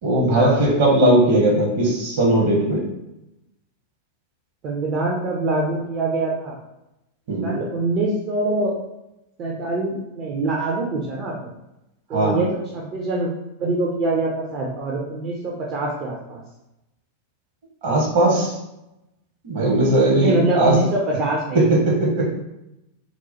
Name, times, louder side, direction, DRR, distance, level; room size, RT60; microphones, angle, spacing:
voice 1, 0.0-2.8 7.3-7.6 12.1-12.5 17.8-18.5 19.4-20.8 21.5-22.3, right 1 dB, 50° right, -2 dB, 1.1 m, -18 dB
voice 2, 4.6-6.6 7.4-8.8 9.4-11.5 12.1-13.3 13.6-16.4 20.1-21.8, right 2 dB, 35° right, -3 dB, 0.6 m, -24 dB
3.0 x 2.2 x 4.0 m, 0.90 s
figure-of-eight pair, 90°, 0 cm